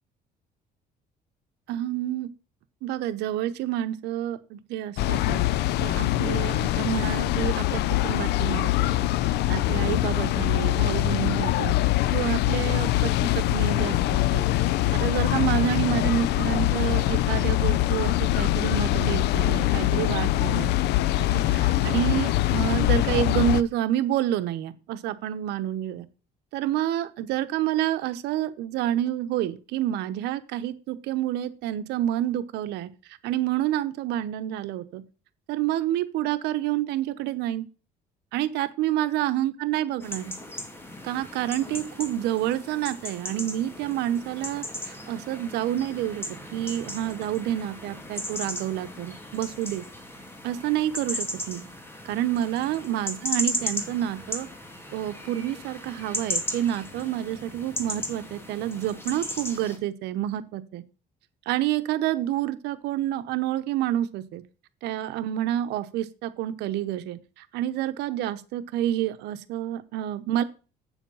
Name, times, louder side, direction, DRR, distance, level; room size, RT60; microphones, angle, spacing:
voice 1, 1.7-2.3 2.8-5.4 5.8-8.9 9.2-11.7 12.1-14.4 14.9-20.7 21.2-26.1 26.5-32.9 33.2-35.0 35.5-37.6 38.3-40.3 41.0-46.3 46.5-49.8 50.4-51.6 52.0-54.5 54.9-60.8 61.5-64.4 64.8-70.4, right 12 dB, 90° right, 12 dB, 1.0 m, -28 dB
sound 1, 5.0-23.6, left 15 dB, 80° left, 0.5 m, -23 dB
sound 2, 40.0-59.8, left 1 dB, 15° left, 2.3 m, -36 dB
8.2 x 7.3 x 5.6 m, 0.35 s
cardioid pair, 110°, 17 cm